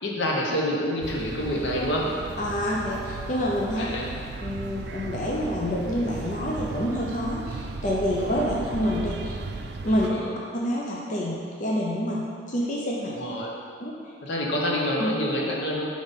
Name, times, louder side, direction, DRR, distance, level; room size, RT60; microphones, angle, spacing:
voice 1, 0.0-2.1 3.8-4.1 8.2-8.6 10.0-10.3 13.1-13.5 14.2-15.8, equal, 75° left, -2 dB, 0.9 m, -27 dB
sound 1, 1.0-10.1, right 3 dB, 60° right, 0.4 m, -36 dB
voice 2, 2.4-3.8 4.4-9.4 9.8-10.2 10.5-13.2 13.8-13.9 15.0-15.1, equal, 45° left, -4 dB, 0.6 m, -27 dB
4.9 x 4.1 x 5.2 m, 2.3 s
head